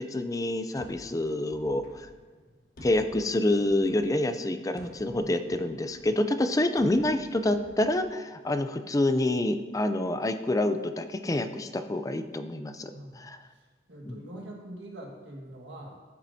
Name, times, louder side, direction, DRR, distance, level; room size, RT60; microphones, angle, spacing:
voice 1, 0.0-2.1 2.8-12.9 13.2-13.4 14.0-14.2, left 1 dB, 20° left, 9 dB, 0.4 m, -27 dB
sound 1, 0.8-8.7, left 1 dB, 55° left, 1.5 m, -52 dB
voice 2, 5.1-5.5 12.9-16.0, right 1 dB, 80° right, 0 dB, 1.7 m, -44 dB
14.0 x 7.4 x 2.8 m, 1.4 s
head